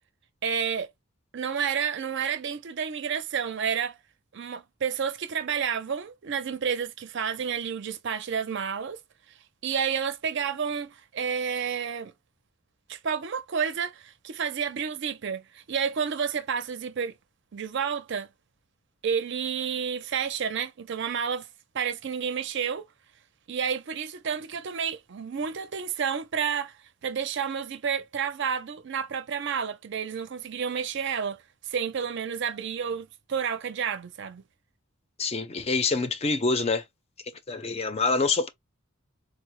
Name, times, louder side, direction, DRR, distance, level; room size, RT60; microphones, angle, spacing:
voice 1, 0.4-0.9 1.3-4.0 4.3-9.0 9.6-12.1 12.9-17.1 17.5-18.3 19.0-21.5 21.7-22.8 23.5-26.7 27.0-31.4 31.7-34.4, right 7 dB, 55° right, 0.5 m, -30 dB
voice 2, 35.2-36.8 37.5-38.5, left 4 dB, 30° left, 0.5 m, -26 dB
4.1 x 2.0 x 3.0 m
head